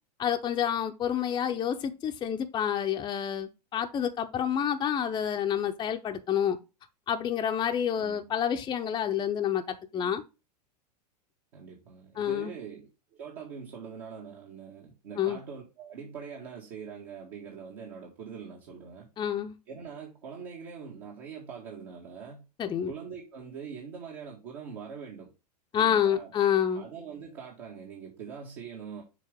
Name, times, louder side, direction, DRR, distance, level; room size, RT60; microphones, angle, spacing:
voice 1, 0.2-6.6 7.1-10.2 12.2-12.5 15.2-15.4 19.2-19.5 22.6-22.9 25.7-26.8, left 9 dB, 20° left, 0.7 m, -28 dB
voice 2, 11.5-19.1 19.7-22.4 22.9-25.3 25.7-26.3 26.7-29.0, right 6 dB, 55° right, 1.9 m, -43 dB
7.2 x 4.1 x 3.5 m
figure-of-eight pair, 95°, 21 cm